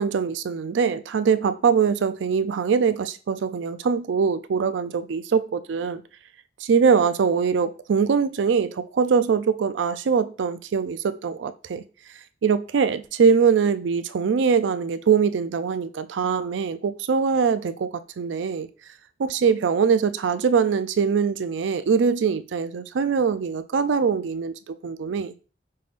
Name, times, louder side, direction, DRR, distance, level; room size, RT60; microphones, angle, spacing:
voice 1, 0.0-6.0 6.6-11.8 12.4-17.9 18.2-18.7 19.2-25.3, right 6 dB, 90° right, 0.4 m, -22 dB
5.5 x 3.4 x 2.5 m
head